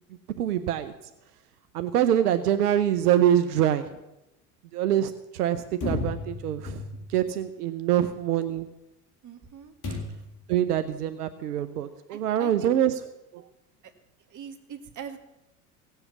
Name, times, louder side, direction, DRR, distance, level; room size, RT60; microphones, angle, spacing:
voice 1, 0.4-0.9 1.7-3.9 4.7-6.8 7.1-8.7 10.5-13.0 13.3-13.4, right 10 dB, 85° right, 10 dB, 0.9 m, -25 dB
sound 1, 5.8-7.3 9.8-10.4, left 3 dB, 45° left, 6.4 m, -33 dB
voice 2, 9.2-9.7 12.1-13.0 14.3-15.2, right 7 dB, 40° right, 7 dB, 2.0 m, -42 dB
17.5 x 7.9 x 7.1 m, 0.93 s
hypercardioid pair, 85°, 45 cm